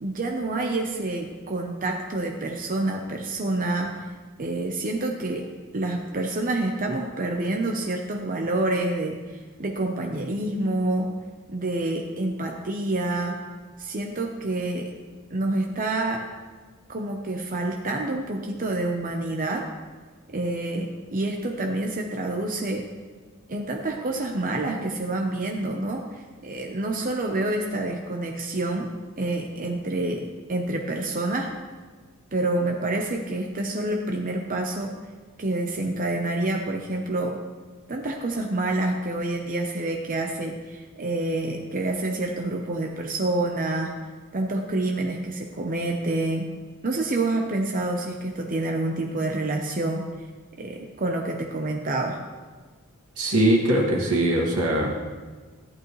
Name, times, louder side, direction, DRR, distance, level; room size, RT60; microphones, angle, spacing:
voice 1, 0.0-4.1 4.4-5.5 5.7-11.1 11.5-13.4 13.8-14.9 15.3-16.3 16.9-19.7 20.3-22.8 23.5-28.9 29.2-31.5 32.3-34.9 35.4-37.4 37.9-43.9 44.3-46.5 46.8-50.1 50.6-52.2, right 2 dB, 40° right, 2 dB, 0.9 m, -28 dB
voice 2, 53.2-54.9, right 1 dB, 80° right, -2 dB, 2.3 m, -21 dB
14.0 x 11.5 x 3.2 m, 1.4 s
head